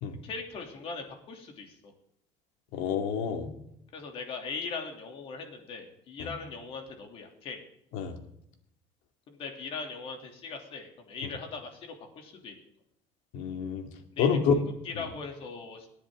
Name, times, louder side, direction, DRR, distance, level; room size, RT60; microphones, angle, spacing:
voice 1, 0.2-1.9 3.9-7.6 9.3-12.6 14.1-15.9, left 4 dB, 45° left, 3 dB, 3.0 m, -40 dB
voice 2, 2.7-3.5 6.2-6.3 7.9-8.1 11.2-11.3 13.3-13.9 14.2-14.5, left 7 dB, 85° left, 5 dB, 2.4 m, -28 dB
27.5 x 10.0 x 3.8 m, 0.78 s
cardioid pair, 155°, 13 cm